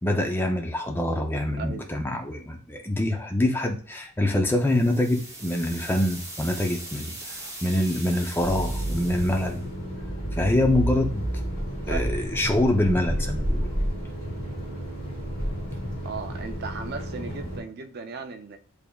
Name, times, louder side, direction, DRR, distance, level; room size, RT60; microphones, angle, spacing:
voice 1, 0.0-9.7 10.3-11.3 11.9-13.7, left 1 dB, 10° left, 0.5 m, -25 dB
voice 2, 1.6-1.9 11.9-12.0 16.0-18.6, right 5 dB, 45° right, 0.5 m, -36 dB
sound 1, 4.6-9.6, right 2 dB, 15° right, 0.8 m, -40 dB
sound 2, 8.4-17.6, equal, 40° left, 2.2 m, -30 dB
6.7 x 3.4 x 2.3 m
head